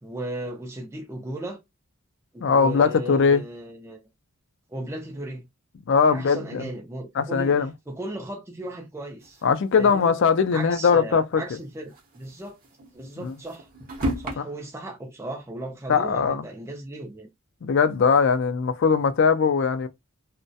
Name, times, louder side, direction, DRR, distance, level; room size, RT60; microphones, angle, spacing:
voice 1, 0.0-1.6 2.3-4.0 4.7-5.4 6.1-7.6 7.9-9.4 9.8-10.1 10.5-12.6 12.9-13.7 14.2-17.3, right 1 dB, 10° right, 0.4 m, -36 dB
voice 2, 2.4-3.4 5.9-6.7 7.2-7.7 9.4-11.4 13.2-13.3 14.4-14.5 15.9-16.4 17.6-19.9, left 5 dB, 55° left, 0.3 m, -20 dB
sound 1, 9.2-10.3 10.7-10.8 11.0-11.1 11.7-14.3, right 1 dB, 40° right, 0.7 m, -33 dB
2.3 x 2.1 x 2.6 m
head